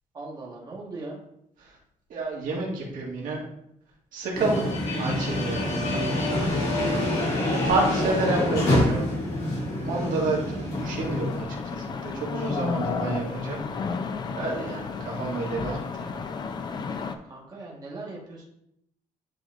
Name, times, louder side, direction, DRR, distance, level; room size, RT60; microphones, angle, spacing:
voice 1, 0.1-1.2 17.2-18.4, right 2 dB, 30° right, -4 dB, 1.4 m, -40 dB
voice 2, 2.1-3.4 4.1-4.7 5.0-6.1 7.4-9.1 9.9-13.6 14.3-16.2, right 2 dB, 80° right, -2 dB, 1.8 m, -29 dB
sound 1, 4.3-11.4, left 1 dB, 55° left, 2.4 m, -26 dB
sound 2, 10.7-17.2, left 5 dB, 30° left, 0.4 m, -32 dB
9.8 x 4.1 x 2.5 m, 0.76 s
cardioid pair, 170°, 14 cm